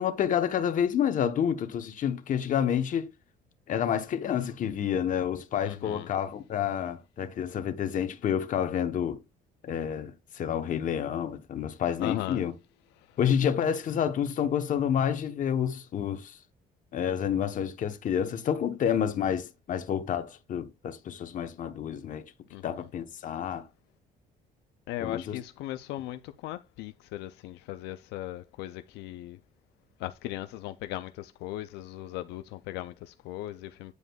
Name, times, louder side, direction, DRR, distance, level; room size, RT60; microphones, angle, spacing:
voice 1, 0.0-3.1 3.7-9.2 9.6-12.5 13.2-16.4 16.9-22.3 22.6-23.7 25.0-25.4, left 8 dB, 50° left, 1.0 m, -29 dB
voice 2, 5.6-6.1 12.0-12.4 22.5-22.9 24.9-29.4 30.0-33.9, left 15 dB, 85° left, 0.4 m, -38 dB
9.4 x 4.9 x 2.3 m
cardioid pair, 110°, 17 cm